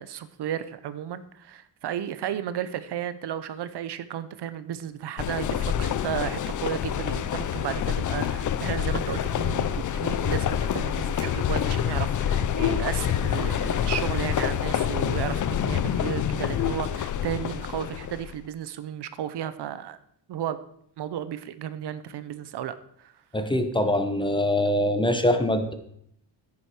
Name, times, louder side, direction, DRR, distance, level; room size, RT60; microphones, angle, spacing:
voice 1, 0.0-20.0 20.3-20.6 21.0-23.1, right 10 dB, 65° right, 13 dB, 0.7 m, -33 dB
sound 1, 5.2-18.3, left 9 dB, 45° left, 0.6 m, -27 dB
voice 2, 23.3-25.7, left 1 dB, 10° left, 7 dB, 0.9 m, -23 dB
10.0 x 9.7 x 4.8 m, 0.69 s
cardioid pair, 135°, 43 cm